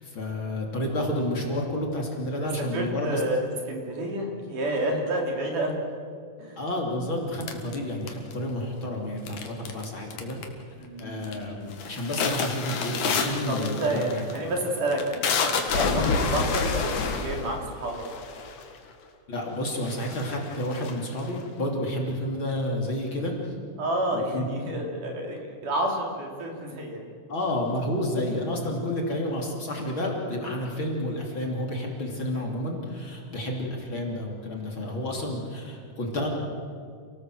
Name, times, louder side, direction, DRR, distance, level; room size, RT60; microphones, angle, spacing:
voice 1, 0.0-3.2 6.6-10.4 11.0-14.2 19.3-23.5 24.1-24.5 27.3-36.3, left 1 dB, 35° left, -1 dB, 3.5 m, -30 dB
voice 2, 2.4-3.4 3.7-5.8 6.4-6.6 10.8-11.3 13.5-18.0 23.8-27.0, right 1 dB, 70° right, 1 dB, 4.9 m, -30 dB
sound 1, 7.4-8.5 9.3-9.8 10.1-10.6 11.0-11.4 11.7-18.8 19.4-19.5 19.8-21.4, left 5 dB, 65° left, 3.2 m, -28 dB
28.0 x 18.5 x 7.8 m, 2.3 s
omnidirectional pair, 3.8 m